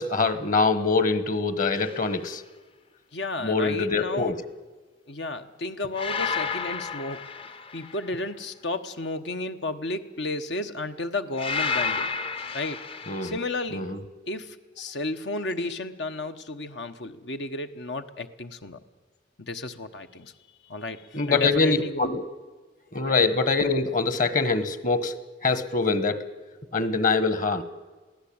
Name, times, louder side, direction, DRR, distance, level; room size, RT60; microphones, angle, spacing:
voice 1, 0.0-2.4 3.4-4.3 13.1-13.4 13.7-14.0 21.1-22.2 22.9-25.1 25.4-26.2 26.7-27.6, left 4 dB, 50° left, 14 dB, 1.5 m, -24 dB
sound 1, 1.8-2.1 6.0-8.1 11.4-13.4, left 5 dB, 30° left, 0.6 m, -31 dB
voice 2, 3.1-4.3 5.1-7.3 7.7-12.1 12.5-12.8 13.2-13.9 14.3-18.8 19.4-20.3 20.6-22.1 23.0-23.2, left 2 dB, 85° left, 8 dB, 1.2 m, -33 dB
22.5 x 16.0 x 8.7 m, 1.3 s
head